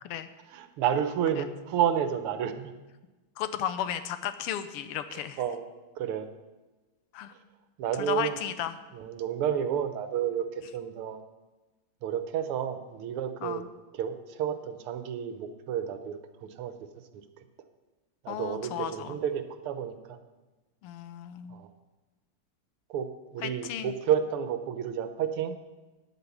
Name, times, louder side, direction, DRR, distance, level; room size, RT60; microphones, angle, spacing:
voice 1, 0.5-2.7 5.1-5.7 6.0-6.3 7.8-8.4 8.9-11.2 12.0-13.6 13.9-16.7 18.2-20.2 21.5-21.7 22.9-25.5, right 9 dB, 85° right, 9 dB, 1.7 m, -31 dB
voice 2, 3.4-5.4 7.1-7.3 8.0-8.8 13.4-13.6 18.3-19.2 20.8-21.5 23.4-23.9, left 10 dB, 90° left, 11 dB, 1.6 m, -34 dB
9.5 x 8.2 x 7.1 m, 1.2 s
omnidirectional pair, 2.4 m